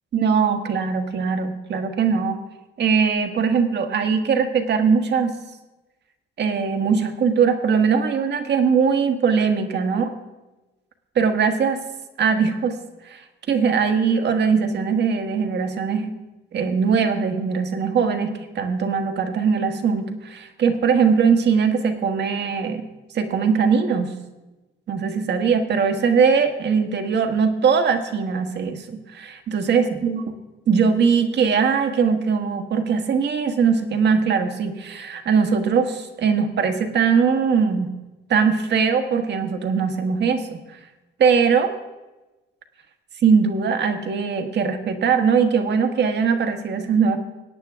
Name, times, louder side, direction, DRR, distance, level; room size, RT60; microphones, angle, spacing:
voice 1, 0.1-2.4 2.8-5.3 6.4-10.1 11.1-11.8 12.2-12.8 13.0-13.2 13.5-16.1 16.5-22.8 23.1-24.1 24.9-30.2 30.7-37.9 38.3-40.6 41.2-41.7 43.2-47.2, right 6 dB, 60° right, 6 dB, 1.4 m, -20 dB
17.5 x 9.0 x 3.5 m, 1.1 s
cardioid pair, 90°, 20 cm